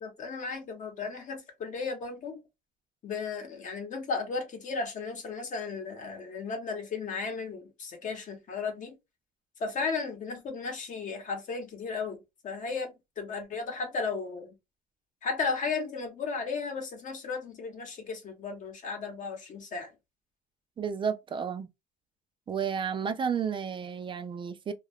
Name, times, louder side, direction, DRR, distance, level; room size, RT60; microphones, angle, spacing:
voice 1, 0.0-2.4 3.0-8.9 9.6-14.5 15.2-20.0, left 4 dB, 50° left, 0.9 m, -35 dB
voice 2, 20.8-21.7 22.5-24.7, right 7 dB, 30° right, 0.4 m, -32 dB
2.3 x 2.2 x 3.3 m
cardioid pair, 110°, 17 cm